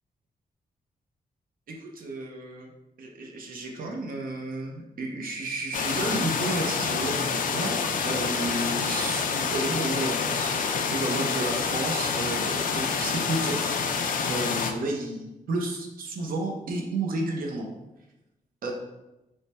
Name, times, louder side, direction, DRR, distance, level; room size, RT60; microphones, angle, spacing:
voice 1, 1.7-2.7 3.0-10.6 10.9-17.7 18.6-18.7, right 2 dB, 70° right, 1 dB, 0.6 m, -32 dB
sound 1, 5.7-14.7, left 5 dB, 65° left, 0.4 m, -27 dB
3.2 x 2.1 x 4.1 m, 0.97 s
cardioid pair, 105°, 15 cm